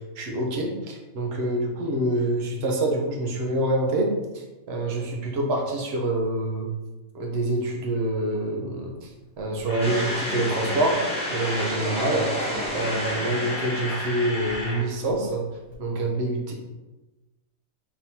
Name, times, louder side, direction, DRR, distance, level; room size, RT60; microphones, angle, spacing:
voice 1, 0.2-4.1 4.7-6.7 7.1-9.1 9.4-11.0 11.3-15.4 15.8-16.5, right 1 dB, 55° right, 1 dB, 0.9 m, -26 dB
Camera, 9.4-11.8 12.5-14.8 15.1-15.2 15.7-15.8, left 1 dB, 40° left, 0.9 m, -33 dB
sound 1, 9.8-15.0, equal, 5° left, 0.8 m, -32 dB
4.0 x 3.6 x 2.8 m, 1.1 s
omnidirectional pair, 1.6 m